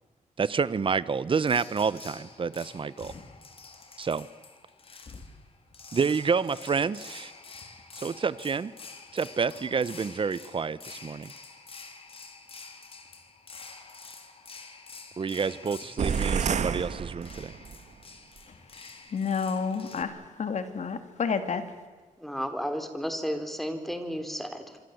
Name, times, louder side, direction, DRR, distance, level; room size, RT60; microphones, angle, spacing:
voice 1, 0.4-3.1 4.0-4.3 5.9-7.3 7.9-8.7 9.1-11.3 15.2-17.5, right 5 dB, 40° right, 17 dB, 1.0 m, -28 dB
sound 1, 1.4-20.0, left 4 dB, 45° left, 3.4 m, -48 dB
sound 2, 16.0-17.8, right 7 dB, 60° right, 1.6 m, -29 dB
voice 2, 19.1-21.6, left 6 dB, 60° left, 9 dB, 2.8 m, -30 dB
voice 3, 22.2-24.8, equal, ahead, 7 dB, 3.5 m, -33 dB
27.5 x 25.5 x 8.0 m, 1.5 s
wide cardioid pair, 115°, 14 cm